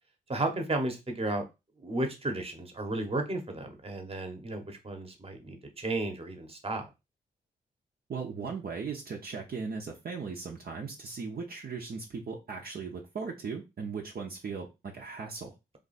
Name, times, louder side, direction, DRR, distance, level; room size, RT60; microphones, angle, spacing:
voice 1, 0.3-1.5 1.8-6.9, right 2 dB, 30° right, 5 dB, 1.0 m, -33 dB
voice 2, 8.1-15.5, right 5 dB, 55° right, 0 dB, 0.7 m, -38 dB
2.6 x 2.4 x 4.1 m, 0.25 s
supercardioid pair, 40°, 19 cm